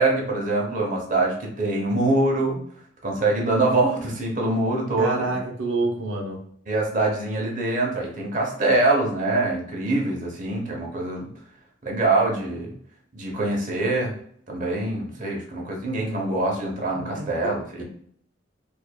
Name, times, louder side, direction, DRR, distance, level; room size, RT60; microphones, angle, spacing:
voice 1, 0.0-2.6 3.0-5.4 6.7-11.3 11.8-12.7 13.1-14.1 14.5-17.8, right 2 dB, 40° right, -1 dB, 0.8 m, -24 dB
voice 2, 5.0-6.4 17.2-17.3, right 3 dB, 90° right, 1 dB, 0.7 m, -27 dB
4.7 x 2.5 x 2.2 m, 0.62 s
head